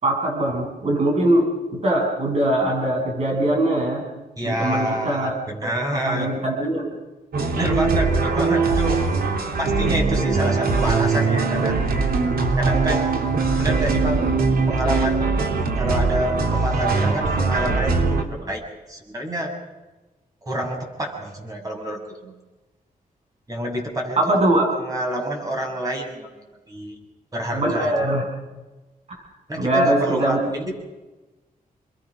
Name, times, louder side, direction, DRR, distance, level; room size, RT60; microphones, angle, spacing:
voice 1, 0.0-4.0 4.4-5.3 5.6-6.9 9.8-9.9 24.2-24.7 27.5-28.2 29.6-30.4, right 1 dB, 45° right, 1 dB, 7.4 m, -22 dB
voice 2, 4.4-6.3 7.6-9.0 9.6-11.8 12.6-13.1 13.6-14.3 14.7-15.2 15.8-18.6 18.9-19.5 20.4-22.4 23.5-24.3 24.7-26.3 26.7-27.0 27.3-27.9 29.5-30.8, right 1 dB, 25° right, 1 dB, 6.7 m, -27 dB
sound 1, 7.3-18.2, right 4 dB, 90° right, 3.2 m, -21 dB
28.5 x 21.5 x 6.4 m, 1.1 s
wide cardioid pair, 160°, 15 cm